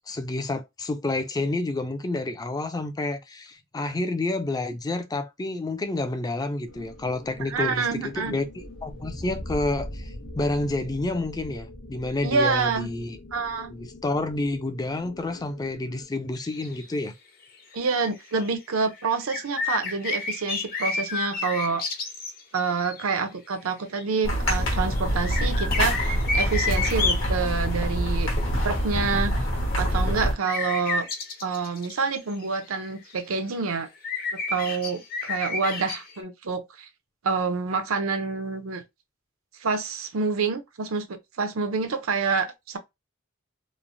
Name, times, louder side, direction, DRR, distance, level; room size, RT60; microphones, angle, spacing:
voice 1, 0.1-13.2 13.7-17.1, left 2 dB, 20° left, 0.3 m, -29 dB
sound 1, 6.7-16.1, left 1 dB, 85° left, 0.9 m, -41 dB
voice 2, 7.5-8.4 12.2-12.9 13.3-13.7 17.7-21.8 22.5-28.3 28.6-29.3 29.8-31.1 31.4-33.9 34.5-36.9 37.2-38.8 39.6-42.8, right 4 dB, 90° right, 0.6 m, -27 dB
sound 2, 16.3-17.0 17.4-17.5 17.7-17.8 18.2-18.5 18.8-23.0 24.0-24.3 24.5-27.3 30.5-33.1 33.4-33.5 33.8-36.2, left 4 dB, 45° left, 0.7 m, -30 dB
sound 3, 24.2-30.3, equal, 65° left, 1.1 m, -25 dB
3.1 x 2.0 x 2.6 m
head